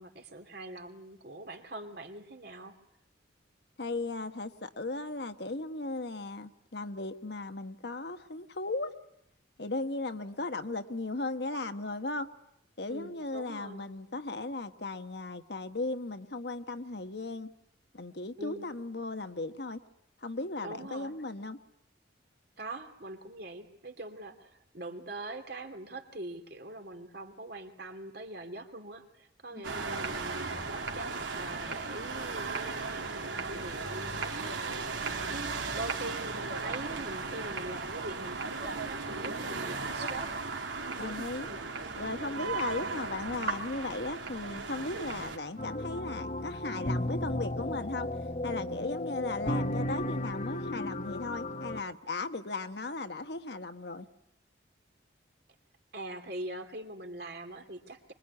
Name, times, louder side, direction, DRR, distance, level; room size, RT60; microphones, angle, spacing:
voice 1, 0.0-2.8 12.9-13.9 18.4-18.7 20.6-21.2 22.6-34.5 35.3-40.4 40.9-41.6 42.3-42.5 55.9-58.1, right 2 dB, 55° right, 5 dB, 2.8 m, -43 dB
voice 2, 3.8-8.9 9.6-12.3 12.8-17.5 17.9-19.8 20.2-21.6 29.5-29.8 41.0-41.5 42.0-48.1 48.4-54.1, left 2 dB, 60° left, 8 dB, 1.2 m, -36 dB
sound 1, 29.6-45.4, right 4 dB, 85° right, 3.5 m, -36 dB
sound 2, 45.6-51.8, left 1 dB, 40° left, 1.2 m, -34 dB
25.0 x 22.5 x 9.6 m, 0.77 s
head